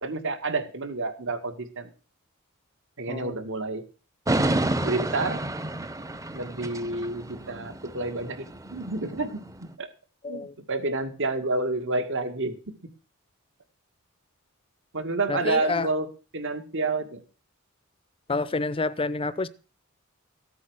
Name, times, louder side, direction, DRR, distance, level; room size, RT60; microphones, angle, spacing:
voice 1, 0.0-1.9 3.0-3.8 4.8-5.4 6.3-9.3 9.8-9.9 10.3-12.6 14.9-16.1 16.3-17.2, right 3 dB, 60° right, 2.1 m, -29 dB
sound 1, 4.3-9.6, right 1 dB, 15° right, 0.9 m, -30 dB
voice 2, 15.3-15.9 18.3-19.5, left 3 dB, 25° left, 0.6 m, -28 dB
15.0 x 8.5 x 6.4 m
head